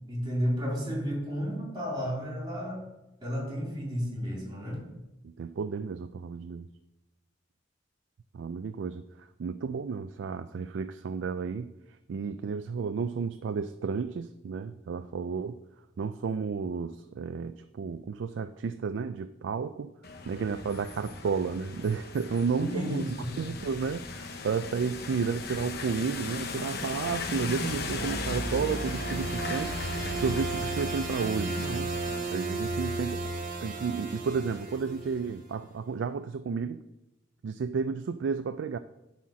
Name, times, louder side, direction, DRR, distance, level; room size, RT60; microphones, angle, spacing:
voice 1, 0.1-2.8 3.2-4.8 22.6-23.3, equal, 25° right, 3.6 m, -32 dB
voice 2, 5.2-6.7 8.3-11.7 12.1-15.6 16.0-19.9 20.3-23.0 23.4-29.8 30.2-31.9 32.3-33.2 33.6-36.8 37.4-38.8, right 5 dB, 65° right, 0.3 m, -32 dB
sound 1, 20.0-32.2, left 3 dB, 55° left, 0.9 m, -37 dB
sound 2, 27.2-35.4, right 3 dB, 45° right, 1.5 m, -35 dB
11.0 x 4.3 x 6.1 m
head